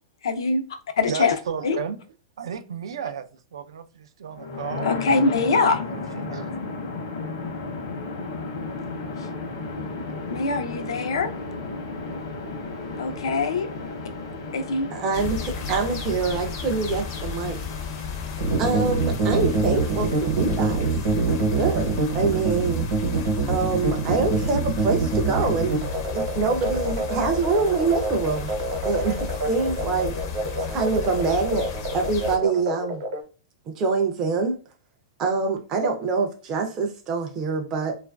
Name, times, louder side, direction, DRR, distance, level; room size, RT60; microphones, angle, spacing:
voice 1, 0.2-1.3 1.6-1.8 4.8-5.8 9.2-9.3 10.3-11.3 13.0-13.7 14.5-14.9, left 4 dB, 90° left, 0.5 m, -23 dB
voice 2, 1.1-2.0 2.4-3.2 3.5-5.0 5.9-6.5, right 7 dB, 90° right, 0.4 m, -33 dB
sound 1, 4.3-20.2, left 3 dB, 65° left, 0.8 m, -34 dB
voice 3, 14.9-17.6 18.6-20.9 21.6-22.9 23.5-25.8 26.1-28.5 28.8-30.1 30.7-31.7 31.9-33.0 33.7-34.6 35.2-37.9, right 4 dB, 20° right, 0.4 m, -25 dB
sound 2, 15.1-32.4, left 6 dB, 40° left, 0.5 m, -33 dB
sound 3, 18.4-33.2, right 3 dB, 55° right, 0.8 m, -25 dB
3.0 x 2.4 x 2.2 m
supercardioid pair, 165°, 3 cm